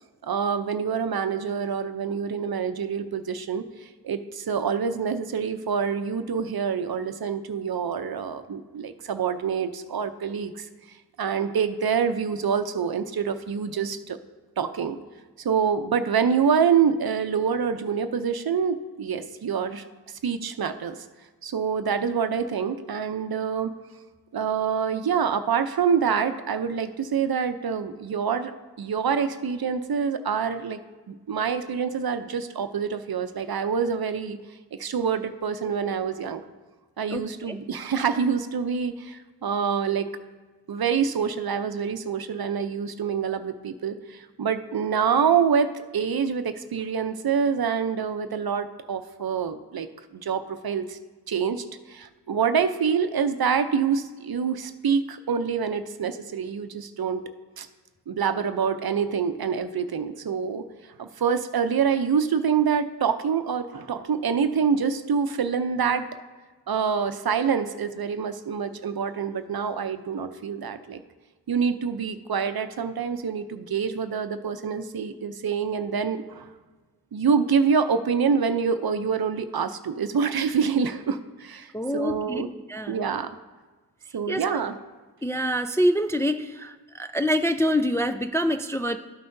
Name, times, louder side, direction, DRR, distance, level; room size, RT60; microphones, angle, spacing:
voice 1, 0.2-10.7 11.2-14.2 14.6-15.0 15.4-19.9 20.2-21.0 21.4-23.7 24.3-28.5 28.8-30.8 31.1-34.4 34.8-36.4 37.0-40.1 40.7-51.0 51.3-57.2 57.6-57.7 58.1-60.6 61.0-66.1 66.7-71.0 71.5-76.5 77.1-82.5 82.9-83.3 84.1-84.8, right 6 dB, 60° right, 10 dB, 0.6 m, -26 dB
voice 2, 37.1-37.6 81.7-82.4 82.7-83.0 84.3-84.6 85.2-89.0, equal, 5° left, 8 dB, 0.3 m, -26 dB
13.0 x 5.7 x 2.6 m, 1.3 s
cardioid pair, 40°, 41 cm